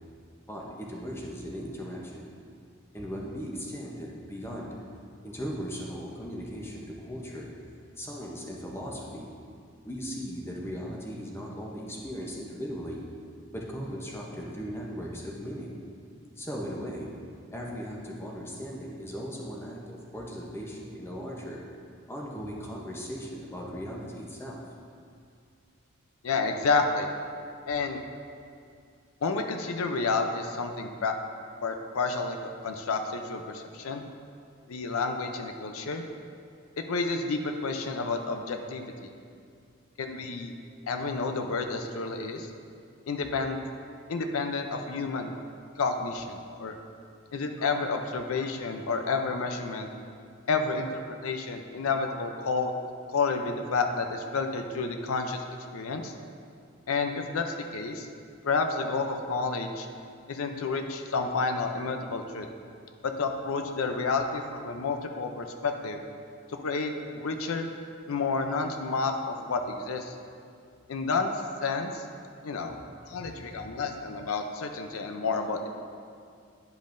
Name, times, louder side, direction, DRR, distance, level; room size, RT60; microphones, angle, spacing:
voice 1, 0.5-2.3 2.9-4.7 5.2-7.5 8.0-9.3 9.8-13.0 13.5-15.8 16.4-17.1 17.5-21.6 22.1-24.6 73.2-73.7, equal, 10° left, -2 dB, 0.7 m, -38 dB
voice 2, 26.2-27.1 27.7-28.0 29.2-31.1 31.6-32.4 32.6-34.0 34.7-36.0 36.9-38.9 40.0-40.5 40.9-42.5 43.1-43.6 44.1-45.3 45.8-46.7 47.3-49.9 50.5-52.7 53.1-55.4 55.7-56.1 56.9-58.1 58.4-59.9 60.3-62.5 63.0-66.0 66.5-67.7 68.1-70.1 70.9-71.3 71.6-72.0 72.4-72.7 73.1-75.7, left 4 dB, 85° left, 5 dB, 0.5 m, -30 dB
10.0 x 5.3 x 2.6 m, 2.3 s
head